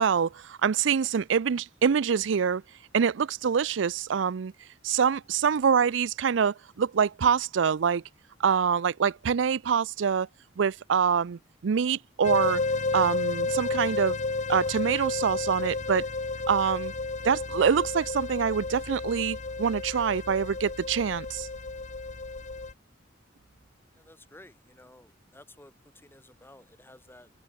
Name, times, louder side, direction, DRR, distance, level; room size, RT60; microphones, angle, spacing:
voice 1, 0.0-2.6 2.9-4.5 4.8-8.0 8.4-10.3 10.6-12.6 12.9-14.2 14.5-16.1 16.5-16.9 17.2-21.5, right 7 dB, 75° right, 0.4 m, -25 dB
sound 1, 12.2-22.7, left 3 dB, 40° left, 1.0 m, -32 dB
voice 2, 23.9-27.3, left 1 dB, 10° left, 3.8 m, -54 dB
head